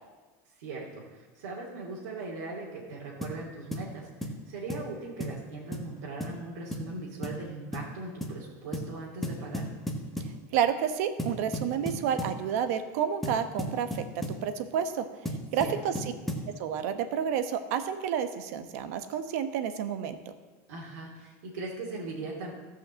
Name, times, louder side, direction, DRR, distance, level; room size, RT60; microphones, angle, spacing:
voice 1, 0.6-9.6 15.6-15.8 20.7-22.5, right 2 dB, 90° right, -6 dB, 2.8 m, -39 dB
sound 1, 3.2-3.4 3.7-3.9 4.2-4.4 4.7-4.9 5.2-5.4 5.7-5.9 6.2-6.4 6.7-6.9 7.2-7.4 7.7-7.9 8.2-8.4 8.7-8.9 9.2-10.4 11.2-12.4 13.2-14.4 15.3-16.5, equal, ahead, 1.2 m, -34 dB
voice 2, 10.5-14.0 14.4-15.0 15.5-15.9 16.6-20.2, right 8 dB, 65° right, 9 dB, 1.1 m, -30 dB
14.5 x 5.7 x 7.5 m, 1.3 s
supercardioid pair, 165°, 9 cm